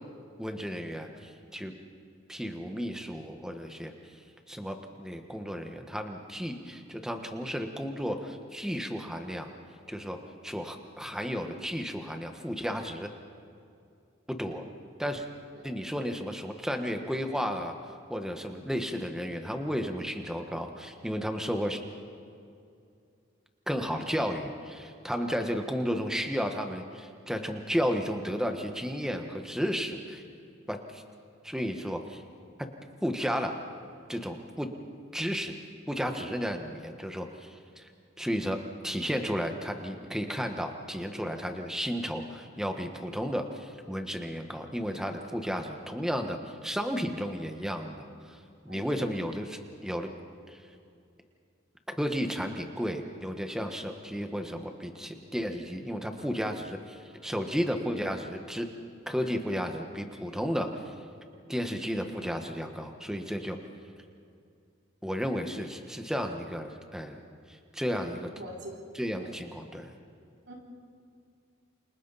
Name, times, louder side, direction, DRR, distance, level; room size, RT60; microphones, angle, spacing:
voice 1, 0.4-1.7 2.3-3.9 4.5-9.5 9.9-10.2 10.4-13.1 14.3-14.6 15.0-15.2 15.6-17.7 18.1-21.8 23.7-30.2 30.7-31.0 31.4-32.2 33.0-33.6 34.1-34.7 35.1-35.5 35.9-37.9 38.2-48.4 48.6-50.1 50.5-50.6 51.9-58.7 59.1-60.9 61.5-63.6 65.0-67.2 67.7-68.3 68.9-69.9, equal, 5° right, 4 dB, 1.4 m, -33 dB
voice 2, 68.4-68.8 69.2-69.3 70.5-70.6, right 1 dB, 60° right, -1 dB, 3.4 m, -43 dB
29.0 x 27.0 x 4.2 m, 2.4 s
head